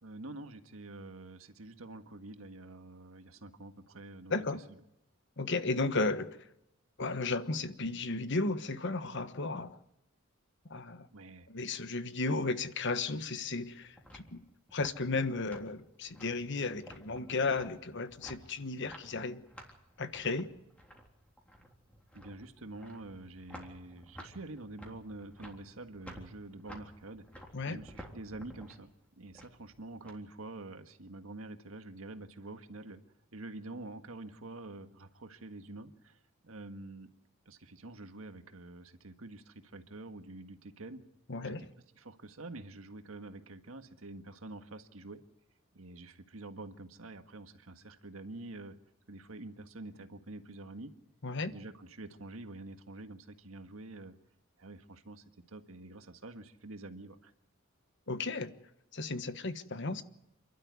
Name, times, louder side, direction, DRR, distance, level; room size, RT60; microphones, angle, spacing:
voice 1, 0.0-4.4 11.1-11.5 22.1-28.9 29.2-33.0 33.3-37.1 37.4-41.0 41.4-41.7 41.9-45.2 45.7-48.7 49.1-50.9 51.4-54.2 54.6-57.3, right 2 dB, 85° right, 1.7 m, -47 dB
voice 2, 4.3-4.6 5.4-6.3 7.0-9.8 10.7-11.1 11.5-14.4 14.7-19.4 20.0-20.5 27.5-27.8 41.3-41.7 51.2-51.5 58.1-58.5 58.9-60.0, left 3 dB, 60° left, 1.3 m, -34 dB
sound 1, 13.5-30.1, equal, 5° left, 3.7 m, -53 dB
28.0 x 12.0 x 9.5 m
head